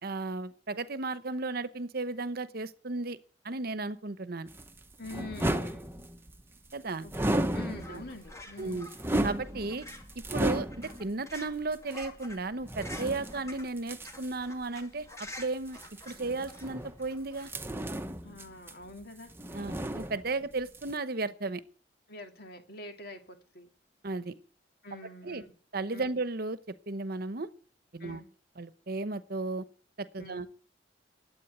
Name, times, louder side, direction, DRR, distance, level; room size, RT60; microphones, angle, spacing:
voice 1, 0.0-3.2 3.4-4.5 6.7-7.1 7.9-8.0 8.6-8.9 9.2-9.9 10.3-15.1 15.4-15.8 16.1-17.5 19.5-21.6 24.0-24.3 25.2-25.4 25.7-26.6 26.9-27.5 27.9-28.2 28.6-29.7 30.0-30.5, right 3 dB, 55° right, 13 dB, 1.0 m, -34 dB
sound 1, 4.5-6.4 7.1-8.2 8.6-11.1 11.7-11.8 12.6-14.3 15.7-17.1 17.4-19.0 19.3-20.5 20.7-20.9, right 1 dB, 15° right, 0.9 m, -34 dB
voice 2, 5.0-6.0 7.0-9.0 18.2-19.3 22.1-23.7 24.8-25.5 25.9-26.1 28.0-28.2 30.2-30.4, left 2 dB, 60° left, 4 dB, 2.5 m, -46 dB
sound 2, 7.8-17.5, left 1 dB, 15° left, 2.4 m, -49 dB
12.0 x 8.7 x 8.1 m, 0.42 s
head